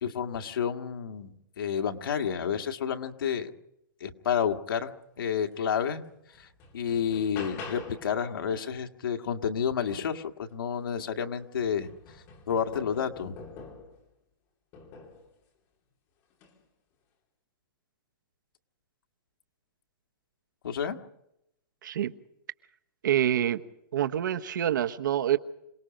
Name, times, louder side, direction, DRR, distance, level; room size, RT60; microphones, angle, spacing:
voice 1, 0.0-3.5 4.0-4.9 5.2-6.0 6.7-11.9 12.5-13.3 20.6-21.0, left 7 dB, 90° left, 1.8 m, -30 dB
sound 1, 5.8-5.9 6.3-8.1 10.5-10.6 11.0-14.0 14.7-15.3 16.3-16.6, left 4 dB, 25° left, 3.2 m, -45 dB
voice 2, 21.8-22.1 23.0-23.6 23.9-25.4, right 11 dB, 65° right, 1.1 m, -26 dB
27.0 x 19.0 x 5.2 m
hypercardioid pair, 175°, 11 cm